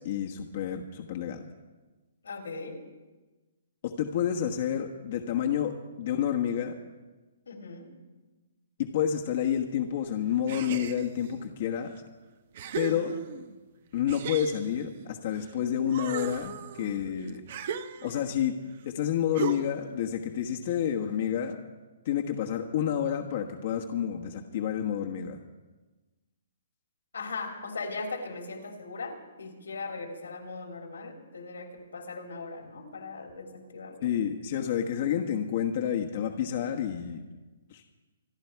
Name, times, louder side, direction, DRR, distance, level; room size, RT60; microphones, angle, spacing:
voice 1, 0.0-1.4 3.8-6.7 8.8-11.9 12.7-13.1 13.9-17.4 18.0-18.6 18.8-21.6 22.0-25.4 34.0-37.2 37.7-37.8, left 9 dB, 50° left, 2 dB, 1.3 m, -29 dB
voice 2, 2.2-2.8 7.5-7.9 12.8-13.2 27.1-34.1, left 3 dB, 85° left, 3 dB, 3.3 m, -39 dB
sound 1, 10.5-11.3 12.0-12.1 12.5-13.6 14.1-15.5 15.8-18.4 19.3-19.9, right 7 dB, 50° right, 1.0 m, -37 dB
26.5 x 10.5 x 4.7 m, 1.2 s
hypercardioid pair, 145°, 0 cm